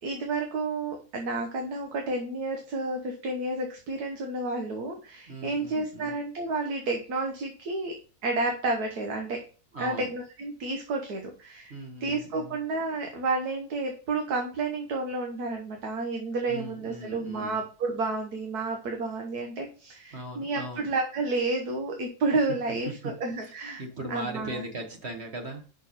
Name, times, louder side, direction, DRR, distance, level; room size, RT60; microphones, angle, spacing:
voice 1, 0.0-7.9 8.2-9.4 9.8-11.7 12.0-23.8 24.1-24.6, right 3 dB, 75° right, 3 dB, 1.6 m, -31 dB
voice 2, 5.3-6.1 9.7-10.1 11.7-12.6 16.5-17.6 20.1-20.9 22.5-23.1 23.8-25.6, right 1 dB, 45° right, 2 dB, 1.6 m, -38 dB
6.1 x 5.5 x 4.1 m, 0.37 s
omnidirectional pair, 1.7 m